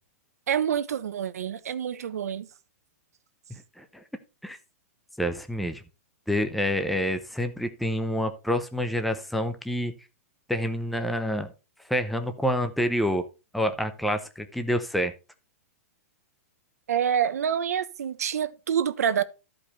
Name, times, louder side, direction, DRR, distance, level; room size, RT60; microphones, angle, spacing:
voice 1, 0.5-2.5 16.9-19.2, right 8 dB, 85° right, 1.1 m, -27 dB
voice 2, 5.2-5.8 6.3-9.9 10.5-11.5 11.9-13.2 13.5-15.1, equal, ahead, 0.7 m, -27 dB
13.5 x 5.1 x 4.2 m
hypercardioid pair, 170°, 8 cm